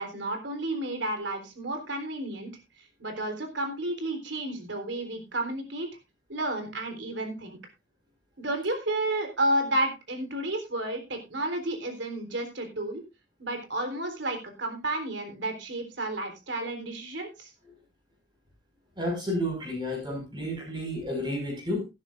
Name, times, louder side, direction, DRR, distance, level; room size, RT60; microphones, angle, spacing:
voice 1, 0.0-2.5 3.0-5.9 6.3-7.6 8.4-13.0 13.4-17.5, right 1 dB, 80° right, 5 dB, 3.8 m, -31 dB
voice 2, 19.0-21.8, equal, 25° right, 0 dB, 6.0 m, -31 dB
17.5 x 11.0 x 2.6 m, 0.27 s
head